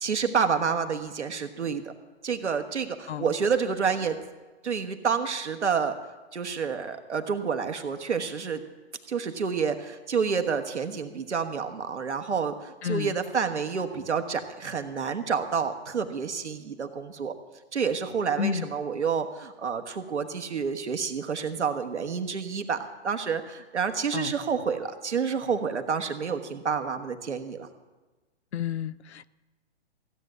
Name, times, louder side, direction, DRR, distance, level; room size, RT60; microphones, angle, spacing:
voice 1, 0.0-1.9 2.2-4.2 4.6-5.9 6.3-8.6 9.1-17.3 17.7-22.8 23.0-27.7, right 6 dB, 80° right, 1.5 m, -29 dB
voice 2, 12.8-13.2 18.4-18.7 24.1-24.3 28.5-29.3, left 9 dB, 70° left, 0.6 m, -30 dB
16.0 x 8.2 x 7.6 m
hypercardioid pair, 125°, 34 cm